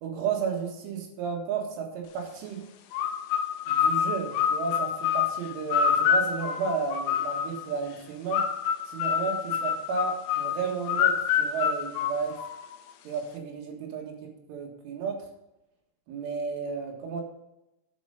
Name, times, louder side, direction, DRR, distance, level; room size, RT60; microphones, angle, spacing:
voice 1, 0.0-2.6 3.7-8.4 8.9-12.3 13.1-14.1 14.5-15.2 16.1-17.2, right 5 dB, 80° right, 0 dB, 4.2 m, -32 dB
sound 1, 2.9-7.7 8.3-12.8, left 8 dB, 85° left, 2.3 m, -27 dB
10.5 x 5.6 x 5.3 m, 0.92 s
omnidirectional pair, 5.6 m